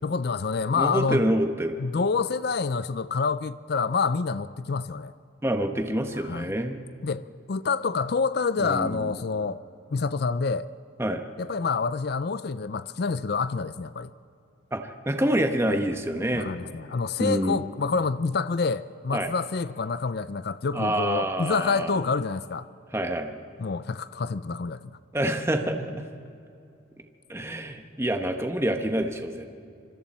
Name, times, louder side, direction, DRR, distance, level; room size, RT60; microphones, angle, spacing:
voice 1, 0.0-1.3 1.8-5.1 6.2-6.5 7.0-9.6 9.9-10.6 11.4-14.1 16.3-22.7 23.6-24.8, left 4 dB, 50° left, 0.4 m, -27 dB
voice 2, 0.7-1.8 5.4-6.8 8.6-9.1 11.0-11.2 14.7-16.5 17.2-17.6 19.1-19.3 20.7-22.0 22.9-23.3 25.1-26.0 27.3-29.5, right 1 dB, 15° right, 1.1 m, -27 dB
25.5 x 24.5 x 4.3 m
head